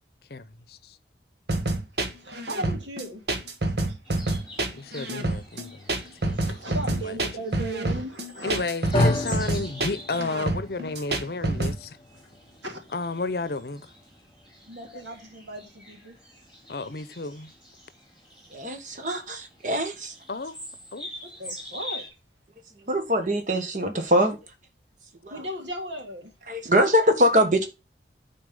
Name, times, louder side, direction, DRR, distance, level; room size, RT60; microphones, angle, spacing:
voice 1, 0.3-1.0 4.7-5.9 6.2-7.2 8.4-12.0 12.9-13.9 14.9-15.0 16.7-17.5 20.3-20.6 20.9-21.1, left 3 dB, 60° left, 0.7 m, -32 dB
sound 1, 1.5-11.8, right 2 dB, 65° right, 1.4 m, -27 dB
voice 2, 2.2-3.2 6.4-8.6 12.6-12.8 14.7-16.2 21.4-22.0 25.3-26.3, right 1 dB, 90° right, 2.5 m, -36 dB
sound 2, 4.0-22.1, left 1 dB, 5° right, 3.9 m, -46 dB
sound 3, 8.9-17.2, left 1 dB, 30° left, 0.7 m, -33 dB
voice 3, 18.5-20.1 22.9-24.4 25.2-25.4 26.5-27.7, equal, 45° right, 1.6 m, -23 dB
9.6 x 4.4 x 5.4 m
head